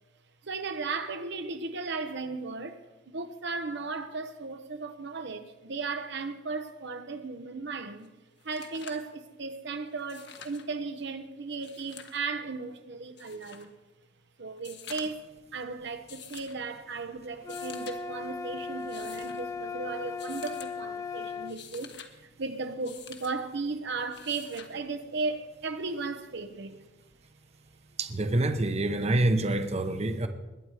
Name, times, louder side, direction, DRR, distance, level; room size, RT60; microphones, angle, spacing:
voice 1, 0.4-8.1 8.4-13.8 14.4-26.9, right 4 dB, 65° right, 0.9 m, -36 dB
sound 1, 8.0-8.1 8.4-9.1 10.0-10.7 11.5-12.2 13.2-13.7 14.6-15.3 16.1-16.6 17.4-18.0 18.8-19.4 20.2-20.7 21.3-22.1 22.8-23.4 24.1-24.7 26.1-26.2, left 8 dB, 60° left, 1.4 m, -47 dB
sound 2, 17.4-21.6, left 5 dB, 15° left, 0.4 m, -37 dB
voice 2, 28.0-30.3, right 2 dB, 35° right, 0.9 m, -26 dB
21.0 x 9.1 x 4.9 m
head